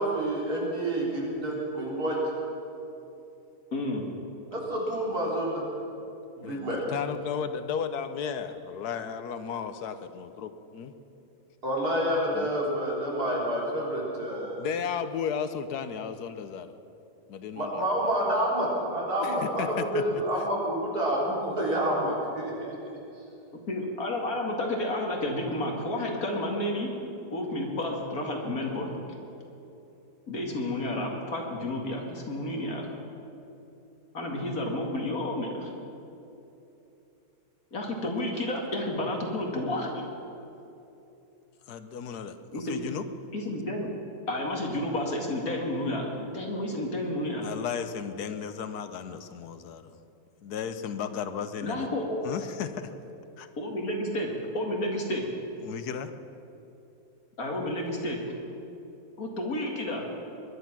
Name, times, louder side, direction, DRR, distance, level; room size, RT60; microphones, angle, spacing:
voice 1, 0.0-2.2 4.5-5.6 6.3-6.8 11.6-14.6 17.6-22.7, right 1 dB, 70° right, -4 dB, 4.4 m, -28 dB
voice 2, 3.7-4.0 23.7-26.9 27.3-28.9 30.3-32.8 34.1-35.7 37.7-40.1 42.5-42.8 43.3-43.9 44.3-47.5 51.6-52.2 53.6-54.3 54.5-55.2 57.4-58.2 59.2-60.0, left 1 dB, 65° left, 0 dB, 2.6 m, -31 dB
voice 3, 6.4-10.9 12.3-12.5 14.6-16.7 17.3-17.8 19.2-20.0 38.0-38.1 41.7-42.4 42.7-43.0 47.4-50.0 50.4-51.9 52.2-52.9 53.4-53.5 55.6-56.1, left 7 dB, 80° left, 10 dB, 1.3 m, -34 dB
21.0 x 11.5 x 6.0 m, 2.9 s
omnidirectional pair, 1.7 m